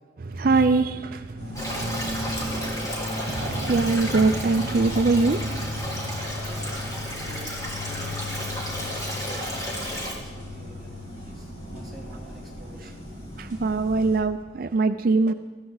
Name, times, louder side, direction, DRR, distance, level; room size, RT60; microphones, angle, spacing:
voice 1, 0.2-2.4 3.3-6.3 9.4-9.5 13.4-15.3, right 3 dB, 55° right, 9 dB, 0.5 m, -24 dB
sound 1, 1.4-14.1, left 1 dB, 60° left, 3.9 m, -36 dB
sound 2, 1.4-14.2, equal, 40° left, 3.9 m, -47 dB
Stream, 1.5-10.1, equal, 20° left, 3.2 m, -33 dB
voice 2, 2.3-2.9 6.4-9.0 9.3-9.6 9.9-13.0, right 1 dB, ahead, -6 dB, 3.7 m, -47 dB
19.0 x 14.5 x 4.0 m, 1.4 s
head